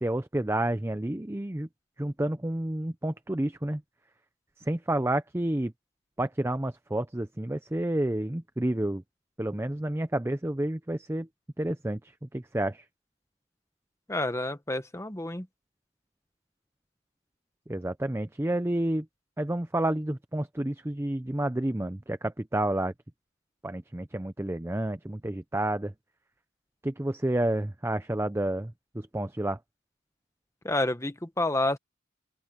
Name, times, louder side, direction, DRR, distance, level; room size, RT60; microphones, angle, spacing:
voice 1, 0.0-1.7 2.0-3.8 4.7-5.7 6.2-9.0 9.4-11.3 11.6-12.8 17.7-19.1 19.4-22.9 23.6-25.9 26.8-29.6, right 1 dB, 10° right, 0.5 m, -30 dB
voice 2, 14.1-15.5 30.6-31.8, left 2 dB, 15° left, 1.1 m, -29 dB
open air
head